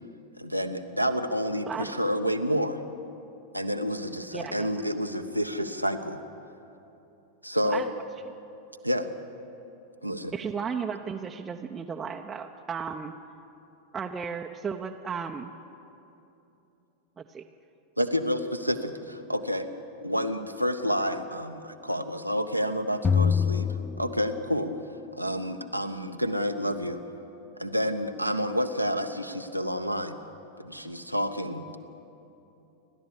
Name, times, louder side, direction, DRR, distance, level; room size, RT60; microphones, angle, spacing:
voice 1, 0.4-2.8 3.5-6.2 7.4-7.8 8.8-9.1 10.0-10.3 18.0-19.7 20.0-24.7 25.1-27.0 27.6-30.2 30.6-31.8, equal, 90° right, 6 dB, 1.0 m, -29 dB
voice 2, 4.3-4.7 7.6-7.9 10.3-13.1 13.9-15.5 17.2-17.4, right 6 dB, 20° right, 2 dB, 0.8 m, -34 dB
sound 1, 23.0-24.8, left 6 dB, 15° left, 0.4 m, -25 dB
30.0 x 12.0 x 8.5 m, 2.9 s
figure-of-eight pair, 90°, 0 cm